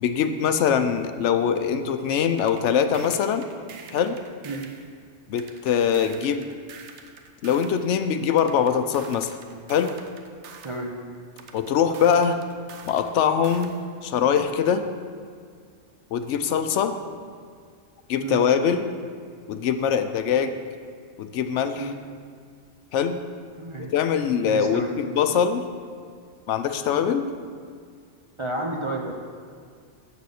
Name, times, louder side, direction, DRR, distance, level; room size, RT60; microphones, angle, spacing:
voice 1, 0.0-3.5 3.9-4.2 5.3-6.5 7.4-9.4 9.7-10.0 11.5-12.4 12.9-13.8 14.0-14.9 16.1-16.9 18.1-18.9 19.5-20.6 21.2-21.9 22.9-23.2 23.9-25.7 26.5-27.3, left 7 dB, 75° left, 9 dB, 0.9 m, -23 dB
sound 1, 2.4-4.9 5.4-7.8 8.4-10.8 11.4-13.8, right 6 dB, 70° right, 1.0 m, -45 dB
voice 2, 10.6-11.0 18.2-18.5 21.8-22.0 23.6-23.9 24.4-25.0 28.4-29.1, right 2 dB, 35° right, 0 dB, 0.6 m, -31 dB
6.9 x 6.7 x 6.4 m, 2.1 s
omnidirectional pair, 1.2 m